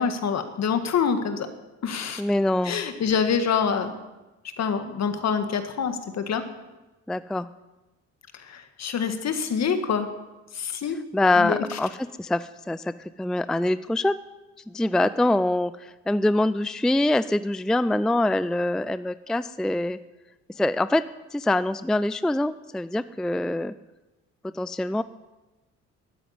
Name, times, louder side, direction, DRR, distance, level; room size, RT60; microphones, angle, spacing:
voice 1, 0.0-1.5 1.8-2.2 2.6-3.9 4.6-6.4 8.3-10.1 10.5-11.0 11.4-11.8, left 6 dB, 60° left, 8 dB, 1.8 m, -26 dB
voice 2, 2.2-2.8 7.1-7.5 11.1-11.9 12.2-14.2 14.7-20.0 20.6-21.0 21.3-23.7 24.5-25.0, left 1 dB, ahead, 15 dB, 0.4 m, -24 dB
13.0 x 9.0 x 9.6 m, 1.1 s
cardioid pair, 90°, 30 cm